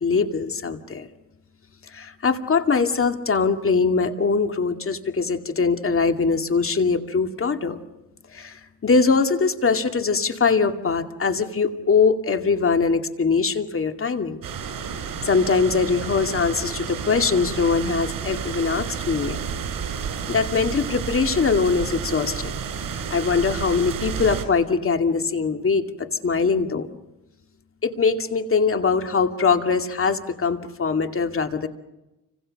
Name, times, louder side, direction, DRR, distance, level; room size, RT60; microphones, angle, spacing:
voice 1, 0.0-1.1 1.9-7.8 8.3-14.4 15.2-19.4 20.0-22.5 22.9-26.9 27.8-31.7, left 5 dB, 40° left, 7 dB, 2.3 m, -22 dB
sound 1, 14.4-24.5, right 7 dB, 75° right, 5.7 m, -31 dB
29.5 x 25.5 x 6.6 m, 0.97 s
cardioid pair, 95°, 34 cm